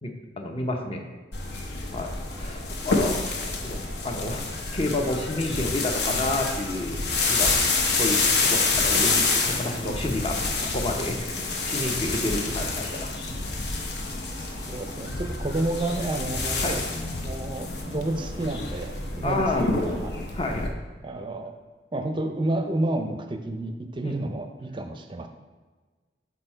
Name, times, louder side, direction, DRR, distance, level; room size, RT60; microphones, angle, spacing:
voice 1, 0.0-1.1 1.9-3.2 3.6-7.0 7.3-7.6 8.0-10.4 10.6-13.1 16.6-16.8 19.2-19.6 20.3-20.7 24.0-24.1, left 2 dB, 30° left, 3 dB, 0.7 m, -30 dB
sound 1, 1.3-20.7, left 3 dB, 65° left, 0.9 m, -28 dB
voice 2, 14.7-16.8 17.2-20.2 21.0-21.6 21.9-25.3, right 1 dB, 25° right, 6 dB, 0.5 m, -30 dB
6.6 x 4.3 x 4.4 m, 1.4 s
head